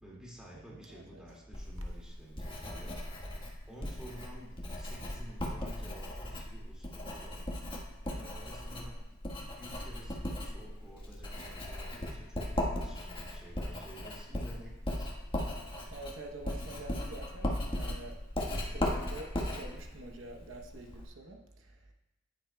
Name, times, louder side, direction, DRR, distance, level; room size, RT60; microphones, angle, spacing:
voice 1, 0.0-3.0 3.7-7.4 8.0-9.2 9.4-15.1, equal, 5° right, -5 dB, 2.0 m, -52 dB
voice 2, 0.5-1.2 15.9-18.2 18.5-21.9, right 2 dB, 75° right, 2 dB, 0.8 m, -47 dB
Writing, 1.5-21.1, left 1 dB, 25° left, 1.3 m, -38 dB
9.9 x 9.4 x 2.2 m, 1.0 s
head